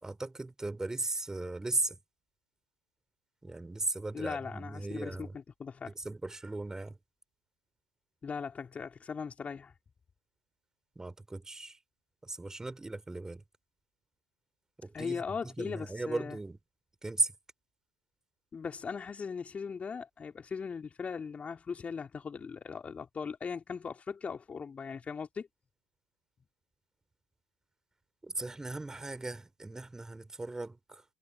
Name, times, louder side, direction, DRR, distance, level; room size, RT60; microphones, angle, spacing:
voice 1, 0.0-2.0 3.4-5.4 5.9-7.0 11.0-11.8 12.2-13.4 14.8-16.6 17.0-17.3 28.2-31.0, right 2 dB, 10° right, 3.7 m, -37 dB
voice 2, 4.1-5.9 8.2-9.7 14.9-16.4 18.5-25.5, left 5 dB, 20° left, 4.3 m, -39 dB
figure-of-eight pair, 80°, 6 cm